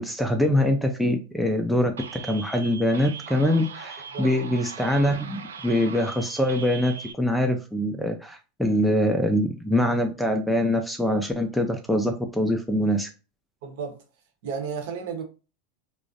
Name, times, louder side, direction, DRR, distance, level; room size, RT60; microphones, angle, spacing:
voice 1, 0.0-13.1, left 1 dB, ahead, 0.4 m, -24 dB
sound 1, 2.0-7.1, right 6 dB, 90° right, 0.3 m, -40 dB
voice 2, 13.6-14.0 14.4-15.2, right 6 dB, 65° right, 0.8 m, -32 dB
2.4 x 2.0 x 2.5 m
hypercardioid pair, 100°, 0 cm